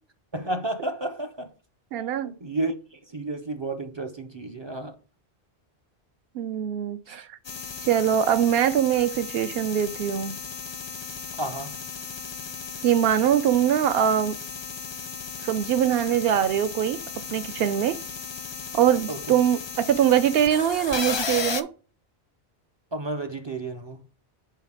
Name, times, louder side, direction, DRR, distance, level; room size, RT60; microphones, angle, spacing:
voice 1, 0.3-1.5 2.0-5.0 7.1-7.2 11.4-11.7 19.1-19.2 22.9-24.0, right 2 dB, 40° right, 0.4 m, -32 dB
voice 2, 1.9-2.3 6.3-7.4 7.9-10.4 12.8-14.4 15.4-17.0 17.3-18.0 18.7-21.7, right 10 dB, 70° right, 0.8 m, -22 dB
sound 1, 7.4-21.6, left 6 dB, 45° left, 0.3 m, -35 dB
5.7 x 4.1 x 4.7 m
omnidirectional pair, 1.1 m